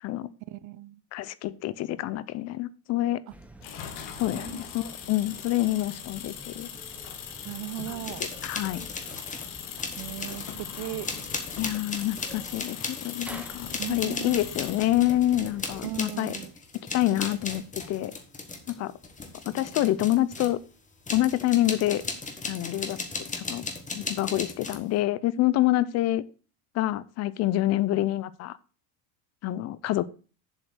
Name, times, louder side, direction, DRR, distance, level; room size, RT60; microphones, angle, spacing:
voice 1, 0.5-1.0 3.3-3.4 4.3-4.6 7.4-8.3 10.0-11.1 13.8-14.4 15.8-16.5, right 17 dB, 40° right, 0.4 m, -37 dB
voice 2, 1.1-3.2 4.2-6.7 7.9-8.0 8.4-8.9 11.6-16.3 16.9-18.1 18.7-18.9 19.5-20.6 21.1-22.0 22.5-23.0 23.3-23.6 23.9-26.2 26.7-28.6 29.4-30.1, left 15 dB, 35° left, 0.4 m, -27 dB
sound 1, 3.3-16.0, right 1 dB, 5° right, 0.7 m, -48 dB
sound 2, 3.6-14.9, left 8 dB, 70° left, 2.0 m, -40 dB
sound 3, 8.0-9.5 9.8-10.6 11.0-20.6 21.1-24.9, left 3 dB, 15° left, 1.3 m, -37 dB
7.4 x 5.0 x 6.1 m
supercardioid pair, 130°, 48 cm